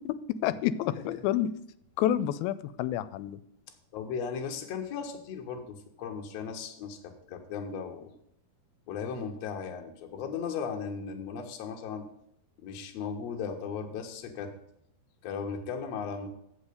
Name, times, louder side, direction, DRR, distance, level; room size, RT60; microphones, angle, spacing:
voice 1, 0.1-1.5 2.0-3.4, left 11 dB, 90° left, 15 dB, 2.4 m, -29 dB
voice 2, 3.9-8.1 8.9-12.1 12.6-14.6 15.2-16.3, left 6 dB, 65° left, 4 dB, 1.8 m, -36 dB
8.1 x 5.6 x 6.6 m, 0.75 s
omnidirectional pair, 4.2 m